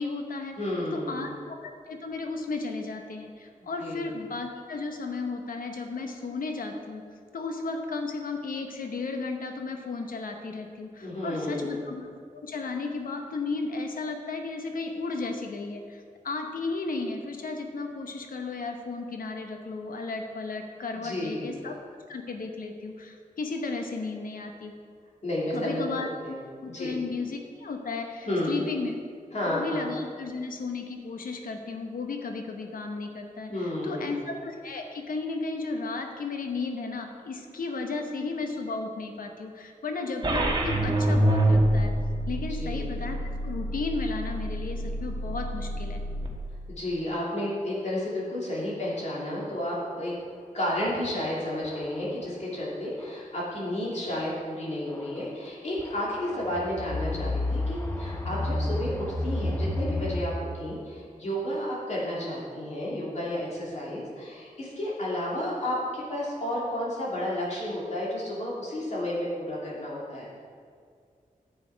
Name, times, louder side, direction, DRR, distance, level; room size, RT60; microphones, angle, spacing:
voice 1, 0.0-0.6 0.9-7.0 7.3-12.1 12.3-21.7 22.1-24.7 25.5-28.9 29.5-41.9 42.3-43.2 43.4-46.0, left 3 dB, 80° left, 4 dB, 0.9 m, -34 dB
voice 2, 0.6-1.4 3.8-4.1 11.0-11.8 20.9-21.5 25.2-25.8 26.3-27.0 28.2-28.6 29.3-29.9 33.5-34.2 42.6-42.9 46.7-50.1 50.5-70.3, left 1 dB, 55° left, -6 dB, 2.7 m, -32 dB
sound 1, 40.2-46.3, right 1 dB, 35° right, 1.2 m, -26 dB
sound 2, 50.9-51.0 51.7-52.0 53.0-53.1 54.9-55.2 55.8-60.2, left 1 dB, 15° left, 0.8 m, -31 dB
10.0 x 7.6 x 4.7 m, 2.1 s
wide cardioid pair, 130°, 14 cm